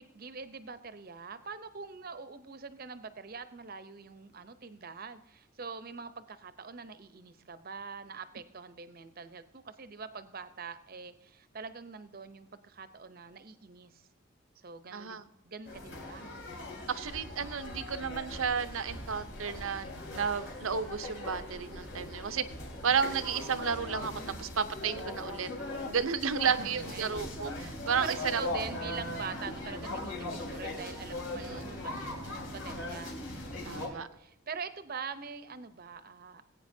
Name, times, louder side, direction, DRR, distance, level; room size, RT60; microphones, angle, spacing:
voice 1, 0.0-14.0 14.6-16.3 26.4-27.3 28.0-33.2 33.7-36.4, right 5 dB, 45° right, 12 dB, 0.7 m, -44 dB
voice 2, 14.9-15.3 16.9-22.4 22.8-24.1 24.4-25.5 25.9-28.4 31.3-31.7 33.6-34.1, right 6 dB, 85° right, 12 dB, 0.7 m, -32 dB
sound 1, 15.6-33.9, left 1 dB, 70° left, 3.1 m, -40 dB
20.0 x 8.8 x 2.7 m, 0.86 s
head